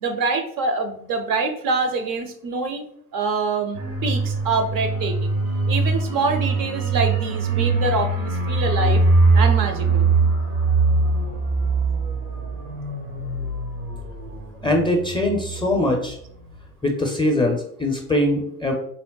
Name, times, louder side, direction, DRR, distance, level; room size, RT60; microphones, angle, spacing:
voice 1, 0.0-2.9 3.1-5.4 5.7-9.0 9.3-10.1, right 4 dB, 50° right, 6 dB, 0.5 m, -25 dB
sound 1, 3.7-16.1 16.4-16.6, right 3 dB, 80° right, 0.9 m, -22 dB
voice 2, 14.6-16.2 16.8-18.7, left 1 dB, 10° left, 2 dB, 0.4 m, -22 dB
3.7 x 2.1 x 2.2 m, 0.68 s
hypercardioid pair, 60°, 43 cm